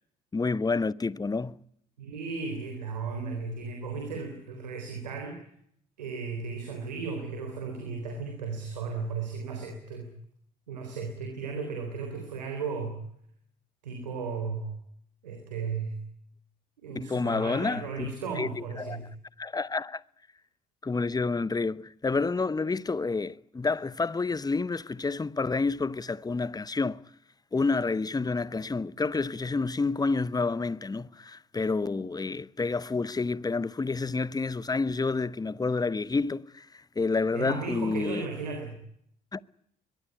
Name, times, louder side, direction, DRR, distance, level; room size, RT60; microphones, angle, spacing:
voice 1, 0.3-1.6 16.9-18.1 18.4-19.0 19.4-20.0 20.8-27.0 27.5-38.3 39.3-39.4, left 4 dB, 20° left, 1.0 m, -29 dB
voice 2, 2.0-5.4 6.0-10.1 10.7-13.0 13.8-14.7 15.2-16.0 16.8-19.1 37.3-38.8, right 4 dB, 85° right, 3.9 m, -35 dB
22.5 x 21.5 x 9.8 m
figure-of-eight pair, 50°, 21 cm